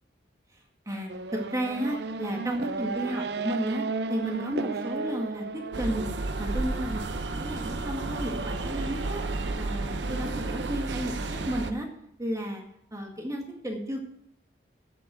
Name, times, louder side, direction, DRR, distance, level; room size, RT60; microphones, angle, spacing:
voice 1, 0.9-6.0 6.4-9.2 9.6-11.9 12.2-12.6 12.9-14.0, right 1 dB, 20° right, 0 dB, 1.9 m, -33 dB
Race car auto racing / Accelerating revving vroom, 1.1-6.3, right 3 dB, 65° right, 0.6 m, -34 dB
sound 1, 5.7-11.7, right 2 dB, 85° right, 0.9 m, -32 dB
8.6 x 7.5 x 8.8 m, 0.73 s
head